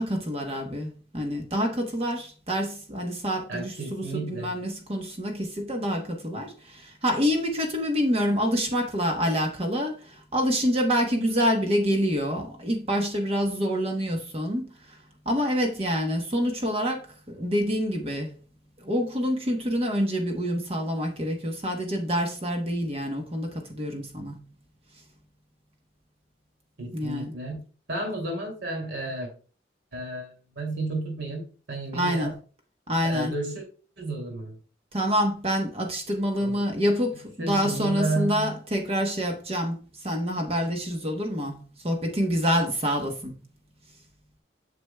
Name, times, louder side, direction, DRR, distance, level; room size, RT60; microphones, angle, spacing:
voice 1, 0.0-15.0 15.3-18.3 18.8-24.4 26.9-27.3 31.9-32.3 32.9-33.4 34.9-39.8 40.0-43.3, equal, 35° right, 1.0 m, -27 dB
voice 2, 3.5-4.6 26.8-27.6 27.9-29.3 29.9-32.3 33.0-33.6 34.0-34.6 36.4-36.6 37.4-38.6, right 2 dB, 85° right, 2.7 m, -32 dB
7.9 x 6.9 x 2.2 m
head